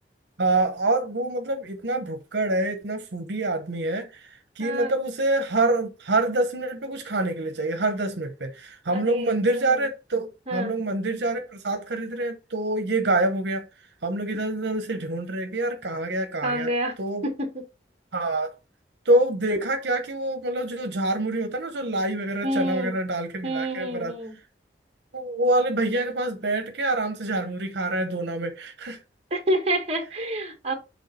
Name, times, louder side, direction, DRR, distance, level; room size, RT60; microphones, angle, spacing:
voice 1, 0.4-13.7 14.0-16.7 17.0-17.2 18.1-18.6 19.0-24.1 25.1-29.0, right 2 dB, 75° right, 0.9 m, -26 dB
voice 2, 4.6-5.0 8.9-9.9 10.5-10.7 16.4-17.0 17.2-17.6 22.4-22.9 23.4-24.4 29.3-30.7, right 1 dB, 35° right, 1.4 m, -28 dB
6.3 x 3.5 x 4.2 m
head